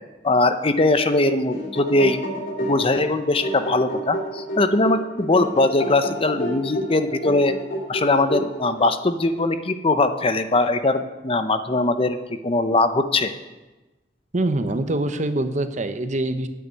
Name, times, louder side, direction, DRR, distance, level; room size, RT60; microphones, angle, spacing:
voice 1, 0.2-2.2 2.6-7.5 7.9-13.3, left 2 dB, 30° left, 10 dB, 0.7 m, -21 dB
sound 1, 1.3-8.9, equal, 55° left, 2.5 m, -30 dB
voice 2, 14.3-16.5, right 1 dB, 45° right, 9 dB, 0.9 m, -24 dB
9.4 x 8.2 x 9.2 m, 1.1 s
head